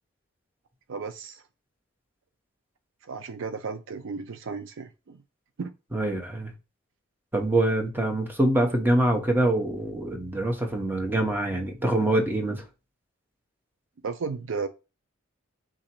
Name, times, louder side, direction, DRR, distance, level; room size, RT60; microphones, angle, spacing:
voice 1, 0.9-1.4 3.0-5.2 5.6-5.7 14.0-14.7, right 5 dB, 65° right, 0.4 m, -34 dB
voice 2, 5.9-6.5 7.3-12.6, right 1 dB, 10° right, 0.9 m, -25 dB
3.7 x 2.8 x 4.3 m
head